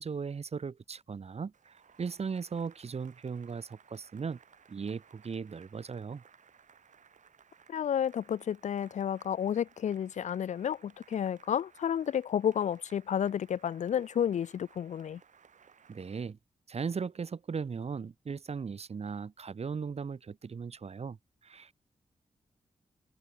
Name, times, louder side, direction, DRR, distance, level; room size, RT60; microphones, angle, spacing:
voice 1, 0.0-4.4 4.7-6.2 15.9-16.4 16.7-21.2 21.4-21.8, right 5 dB, 55° right, 1.1 m, -37 dB
Cheering / Applause, 1.5-16.3, right 7 dB, 75° right, 6.2 m, -61 dB
voice 2, 7.7-15.2, left 9 dB, 70° left, 0.4 m, -31 dB
cardioid pair, 60°, 13 cm